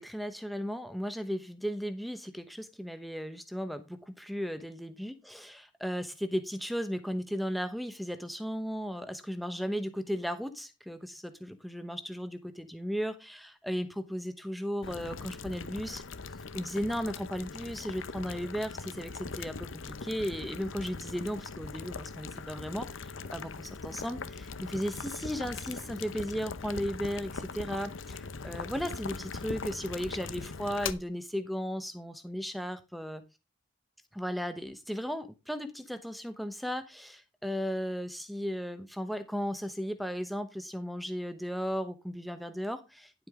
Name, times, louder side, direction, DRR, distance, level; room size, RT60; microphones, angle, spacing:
voice 1, 0.0-16.0 16.5-33.2 34.1-43.3, equal, ahead, 9 dB, 0.9 m, -36 dB
Boiling, 14.8-30.9, left 4 dB, 70° left, 0.8 m, -41 dB
11.0 x 7.9 x 3.7 m, 0.26 s
head